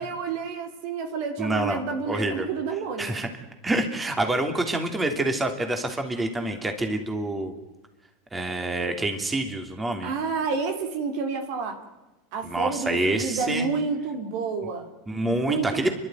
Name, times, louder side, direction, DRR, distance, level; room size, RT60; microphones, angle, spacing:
voice 1, 0.0-3.2 10.0-11.8 12.3-14.9 15.3-15.9, right 5 dB, 65° right, 6 dB, 3.5 m, -29 dB
voice 2, 1.4-2.5 3.0-3.3 3.6-7.5 8.3-10.1 12.4-13.7 15.1-15.9, right 2 dB, 15° right, 6 dB, 3.0 m, -27 dB
29.5 x 12.5 x 9.3 m, 1.1 s
hypercardioid pair, 95°, 0 cm